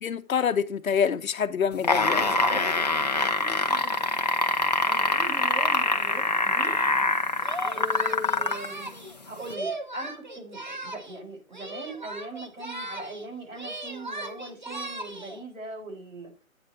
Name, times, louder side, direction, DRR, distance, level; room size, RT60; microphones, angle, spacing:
voice 1, 0.0-2.2, left 7 dB, 70° left, 0.8 m, -26 dB
sound 1, 1.7-8.7 9.5-9.6, left 2 dB, 30° left, 0.5 m, -24 dB
voice 2, 2.1-4.0 4.9-6.7 7.7-8.9 9.3-16.3, right 1 dB, 70° right, 5.0 m, -40 dB
Singing, 7.4-11.2 11.5-13.3 13.5-15.4, right 2 dB, 35° right, 0.4 m, -37 dB
8.8 x 4.2 x 4.7 m
hypercardioid pair, 160°, 42 cm